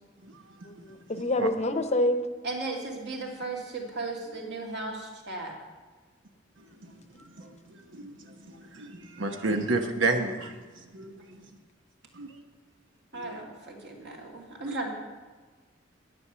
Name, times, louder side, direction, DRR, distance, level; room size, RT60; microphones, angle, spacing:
voice 1, 0.7-2.2, left 1 dB, 35° left, 8 dB, 0.8 m, -27 dB
voice 2, 2.4-5.5 13.1-14.9, right 2 dB, 60° right, -1 dB, 2.5 m, -36 dB
voice 3, 8.8-10.5 10.9-11.1 12.2-12.3 13.1-13.3 14.6-14.8, right 3 dB, 80° right, 5 dB, 1.0 m, -29 dB
10.0 x 9.7 x 6.8 m, 1.4 s
head